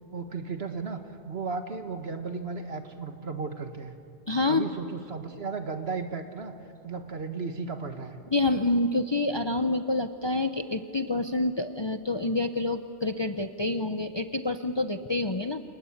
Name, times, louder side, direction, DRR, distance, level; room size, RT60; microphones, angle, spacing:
voice 1, 0.1-4.0 4.5-6.5 6.8-8.2, right 4 dB, 60° right, 6 dB, 1.8 m, -35 dB
voice 2, 4.3-4.6 8.3-15.6, left 2 dB, 30° left, 8 dB, 0.7 m, -27 dB
28.5 x 19.0 x 8.6 m, 2.6 s
omnidirectional pair, 1.2 m